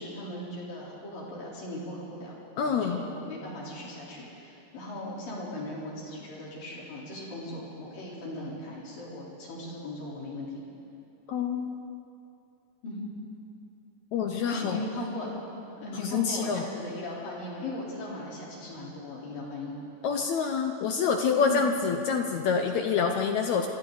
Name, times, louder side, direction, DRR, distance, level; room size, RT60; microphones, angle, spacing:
voice 1, 0.0-10.5 12.8-13.1 14.5-15.3 15.8-19.7 21.4-21.6, left 2 dB, 90° left, -5 dB, 5.8 m, -38 dB
voice 2, 2.6-3.0 11.3-11.8 14.1-14.8 16.0-16.6 20.0-23.7, left 6 dB, 70° left, 4 dB, 2.0 m, -27 dB
29.0 x 24.5 x 4.1 m, 2.8 s
omnidirectional pair, 3.8 m